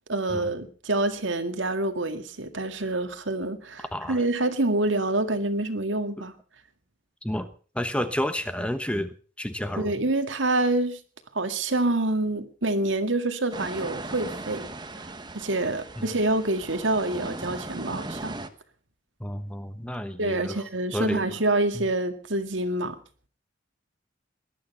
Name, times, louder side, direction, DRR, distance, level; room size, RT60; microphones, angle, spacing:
voice 1, 0.1-6.3 9.8-11.0 11.3-14.7 15.3-18.3 20.2-23.0, right 2 dB, 80° right, 2.1 m, -27 dB
voice 2, 7.7-9.1 9.4-9.9 16.0-16.1 19.2-20.6 20.9-21.2 21.7-21.8, equal, 5° left, 1.2 m, -30 dB
Waves on a sandy sea shore, 13.5-18.5, right 2 dB, 25° right, 1.2 m, -38 dB
19.5 x 12.0 x 5.6 m
head